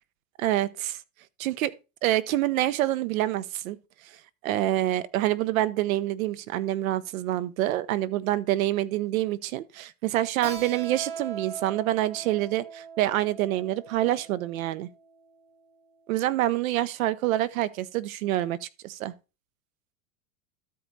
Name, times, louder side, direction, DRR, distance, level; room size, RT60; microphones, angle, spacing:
voice 1, 0.4-1.0 1.4-1.7 2.0-3.8 4.4-14.9 16.1-19.1, right 14 dB, 80° right, 0.9 m, -27 dB
Keyboard (musical), 10.4-15.7, right 6 dB, 60° right, 4.4 m, -41 dB
12.5 x 4.8 x 4.0 m
supercardioid pair, 120°, 41 cm